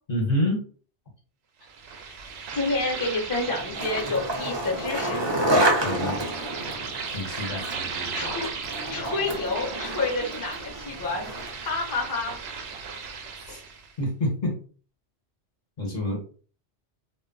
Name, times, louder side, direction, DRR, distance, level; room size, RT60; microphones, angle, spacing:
voice 1, 0.1-0.6 5.8-6.2 7.1-7.7 13.4-13.6 14.0-14.6 15.8-16.4, left 1 dB, 45° left, -2 dB, 1.0 m, -27 dB
sound 1, 1.7-13.9, right 5 dB, 70° right, 0.8 m, -37 dB
voice 2, 2.5-5.2 8.1-8.5 8.9-11.3 11.6-12.4, left 3 dB, 20° left, -1 dB, 0.7 m, -29 dB
Skateboard, 3.4-11.7, right 1 dB, 35° right, 0.5 m, -29 dB
2.2 x 2.0 x 3.7 m, 0.41 s
omnidirectional pair, 1.2 m